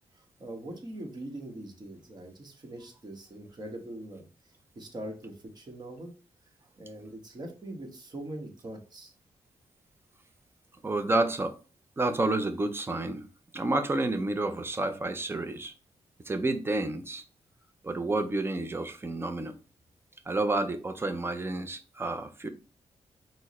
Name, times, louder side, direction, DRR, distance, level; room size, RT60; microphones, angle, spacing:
voice 1, 0.1-4.2 4.7-6.1 6.8-9.1, right 1 dB, 35° right, 1.2 m, -42 dB
voice 2, 10.8-11.6 12.0-13.3 13.5-15.7 16.2-17.2 17.8-19.5 20.3-22.5, right 2 dB, 20° right, 0.5 m, -30 dB
4.5 x 2.1 x 4.1 m
cardioid pair, 110°, 12 cm